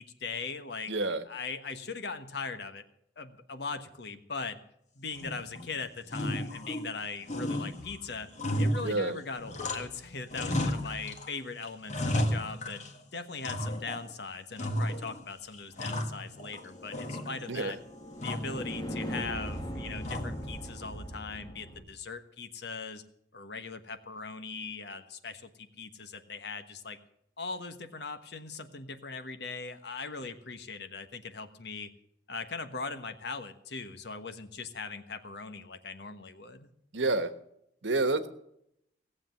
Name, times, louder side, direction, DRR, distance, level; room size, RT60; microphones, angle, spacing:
voice 1, 0.0-0.9 1.3-2.8 3.2-4.6 4.9-8.3 8.6-12.8 13.1-17.8 18.2-23.0 23.3-27.0 27.4-31.9 32.3-36.7, left 4 dB, 65° left, 9 dB, 1.3 m, -40 dB
voice 2, 0.9-1.2 8.8-9.2 17.5-17.7 36.9-37.3 37.8-38.3, right 2 dB, 80° right, 11 dB, 1.3 m, -28 dB
sound 1, 5.1-5.7 6.1-7.0 7.3-10.0 10.3-11.3 11.6-13.0 13.4-14.1 14.6-15.2 15.5-16.6 16.9-17.6 18.2-18.6 20.0-20.6, left 1 dB, 40° left, 1.6 m, -33 dB
sound 2, 16.2-21.8, equal, 20° left, 1.5 m, -40 dB
18.0 x 7.6 x 7.6 m, 0.75 s
head